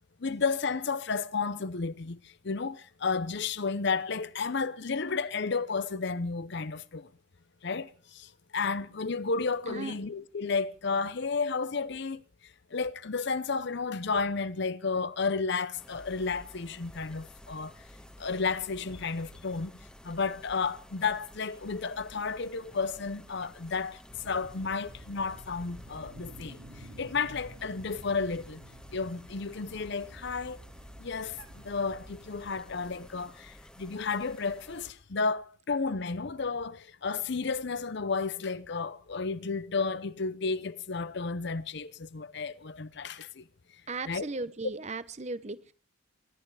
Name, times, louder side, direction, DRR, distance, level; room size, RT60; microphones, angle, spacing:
voice 1, 0.2-7.1 7.6-12.2 12.7-17.7 18.2-19.7 20.0-28.6 28.9-30.6 31.0-43.4 44.1-44.3, left 4 dB, 55° left, 0.7 m, -32 dB
sound 1, 15.7-34.9, equal, 5° left, 1.2 m, -52 dB
sound 2, 24.1-33.0, right 1 dB, 70° right, 2.7 m, -51 dB
voice 2, 43.9-45.7, right 3 dB, 35° right, 0.9 m, -37 dB
24.0 x 11.5 x 4.9 m
head